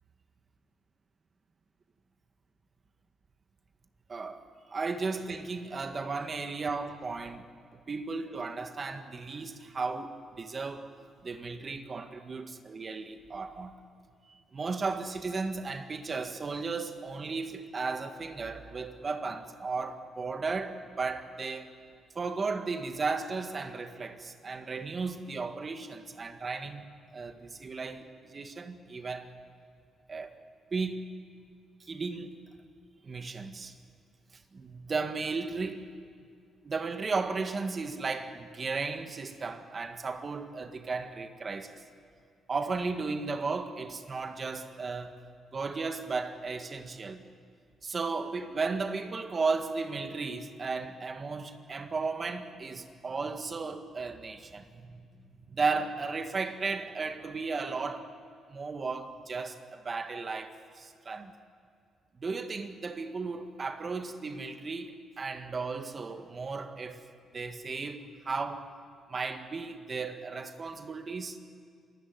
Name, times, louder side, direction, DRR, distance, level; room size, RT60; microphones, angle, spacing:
voice 1, 4.1-7.5 7.7-10.9 11.2-13.7 14.5-21.7 22.2-26.9 27.1-29.3 30.1-30.4 30.7-31.0 31.8-32.4 33.0-33.7 34.5-35.9 36.6-41.8 42.5-45.1 45.5-47.2 47.8-55.1 55.5-58.1 58.5-61.3 62.2-67.1 67.3-68.7 69.1-71.4, right 4 dB, 35° right, 1.8 m, -35 dB
27.5 x 16.0 x 9.5 m
cardioid pair, 90°, 0 cm